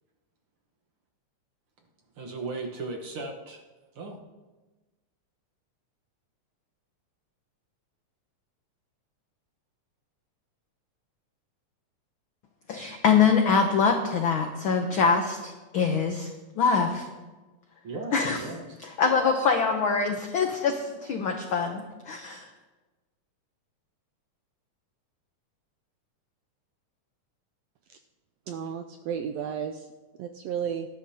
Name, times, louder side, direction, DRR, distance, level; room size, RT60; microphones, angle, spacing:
voice 1, 2.2-3.6 4.0-4.2 17.8-18.8, right 3 dB, 55° right, 1 dB, 1.8 m, -36 dB
voice 2, 12.7-16.3 16.6-17.1 18.1-18.4 18.8-22.5, left 5 dB, 80° left, 4 dB, 1.1 m, -24 dB
voice 3, 28.5-29.9 30.2-30.9, right 8 dB, 80° right, 6 dB, 1.5 m, -33 dB
18.5 x 11.5 x 2.8 m, 1.2 s
omnidirectional pair, 3.4 m